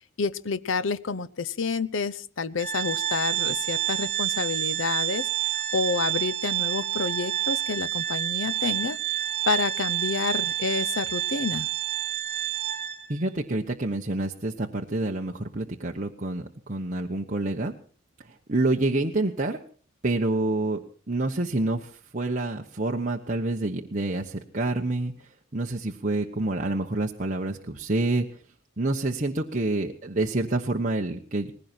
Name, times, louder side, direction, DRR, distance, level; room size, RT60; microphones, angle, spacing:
voice 1, 0.2-9.0 9.5-11.7, left 4 dB, 65° left, 16 dB, 0.7 m, -29 dB
Organ, 2.6-13.2, right 12 dB, 55° right, 3.1 m, -28 dB
voice 2, 13.1-17.7 18.2-19.6 20.0-20.8 21.1-25.1 25.5-28.4 28.8-31.5, right 2 dB, 40° right, 1 dB, 1.1 m, -27 dB
19.5 x 16.5 x 4.5 m, 0.42 s
head